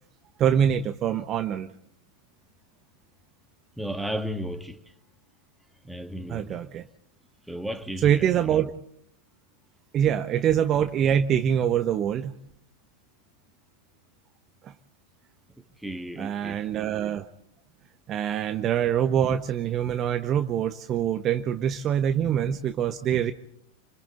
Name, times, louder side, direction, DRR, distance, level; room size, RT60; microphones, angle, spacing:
voice 1, 0.4-1.7 6.3-6.8 8.0-8.7 9.9-12.4 14.6-14.7 16.2-17.2 18.1-23.3, right 9 dB, 30° right, 1.1 m, -24 dB
voice 2, 3.8-4.9 5.8-6.7 7.5-8.7 15.6-16.7, equal, ahead, 2.1 m, -35 dB
30.0 x 26.5 x 4.0 m
figure-of-eight pair, 90°, 0 cm